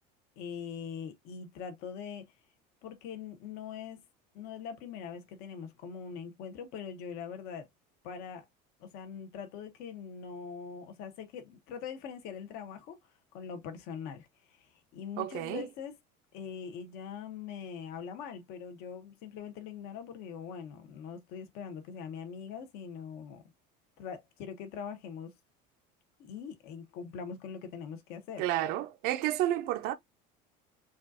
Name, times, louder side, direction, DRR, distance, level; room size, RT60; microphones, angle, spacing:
voice 1, 0.4-2.3 2.8-4.0 4.3-7.7 8.0-8.4 8.8-13.0 13.3-16.0 16.3-23.4 24.0-25.3 26.2-28.4, left 7 dB, 50° left, 1.1 m, -42 dB
voice 2, 15.2-15.6 28.4-29.9, right 13 dB, 50° right, 0.5 m, -31 dB
5.3 x 2.5 x 2.6 m
cardioid pair, 170°, 20 cm